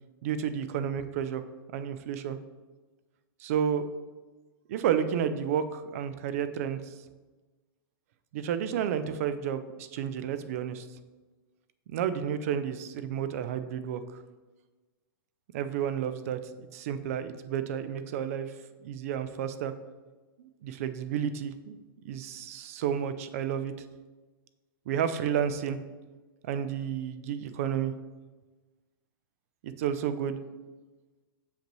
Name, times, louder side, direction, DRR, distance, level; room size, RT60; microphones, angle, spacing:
voice 1, 0.2-1.4 1.7-2.4 3.4-3.8 4.7-6.8 8.3-10.9 11.9-14.2 15.5-18.5 18.8-19.7 20.4-21.8 22.0-23.7 24.9-25.8 26.4-27.9 29.6-30.4, right 8 dB, 40° right, 12 dB, 0.4 m, -31 dB
6.7 x 5.2 x 3.0 m, 1.3 s
supercardioid pair, 165°, 12 cm